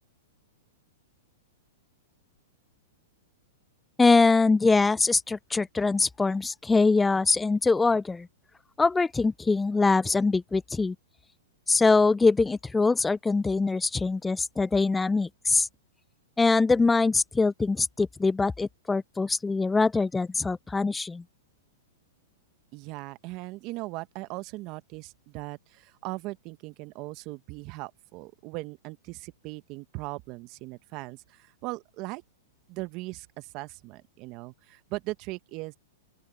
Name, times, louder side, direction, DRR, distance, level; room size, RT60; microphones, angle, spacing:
voice 1, 4.0-8.3 8.8-11.0 11.7-15.7 16.4-21.2, left 3 dB, 10° left, 0.3 m, -23 dB
voice 2, 22.7-32.2 32.7-35.8, right 21 dB, 40° right, 1.1 m, -39 dB
open air
hypercardioid pair, 125°, 0 cm